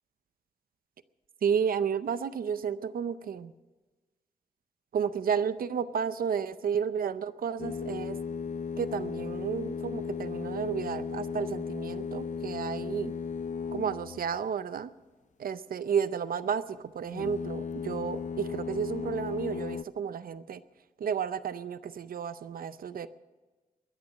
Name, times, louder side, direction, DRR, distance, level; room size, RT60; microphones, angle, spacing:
voice 1, 1.4-3.5 4.9-8.2 8.8-13.1 13.7-14.9 15.4-20.6 21.0-23.1, right 7 dB, 90° right, 14 dB, 0.6 m, -32 dB
sound 1, 7.6-14.4 17.1-19.8, left 6 dB, 60° left, 0.4 m, -36 dB
21.0 x 10.5 x 6.4 m, 1.2 s
wide cardioid pair, 95°, 15 cm